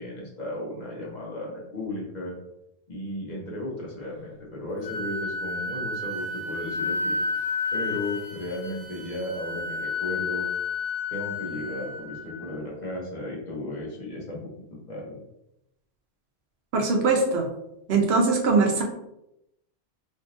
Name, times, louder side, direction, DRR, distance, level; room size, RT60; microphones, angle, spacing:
voice 1, 0.0-2.3 2.9-7.4 7.7-10.5 11.1-15.2, left 1 dB, 45° left, -3 dB, 0.9 m, -35 dB
Wind instrument woodwind instrument, 4.8-12.6, left 4 dB, 75° left, 1.3 m, -31 dB
voice 2, 16.7-17.5 17.9-18.8, right 4 dB, 75° right, 2 dB, 0.9 m, -21 dB
3.6 x 2.7 x 2.5 m, 0.85 s
omnidirectional pair, 1.1 m